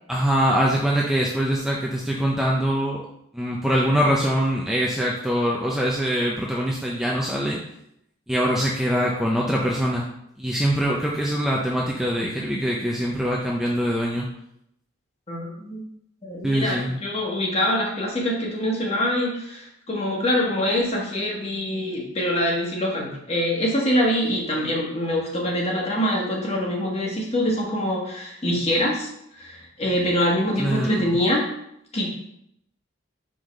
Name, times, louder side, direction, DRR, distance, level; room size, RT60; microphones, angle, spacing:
voice 1, 0.1-3.0 3.3-7.6 8.3-10.1 10.4-14.3 16.4-17.0 30.6-31.2, equal, ahead, -3 dB, 0.5 m, -23 dB
voice 2, 15.3-15.8 16.2-29.1 29.4-31.4 31.9-32.1, left 1 dB, 30° left, -2 dB, 1.3 m, -24 dB
4.8 x 3.9 x 5.2 m, 0.76 s
head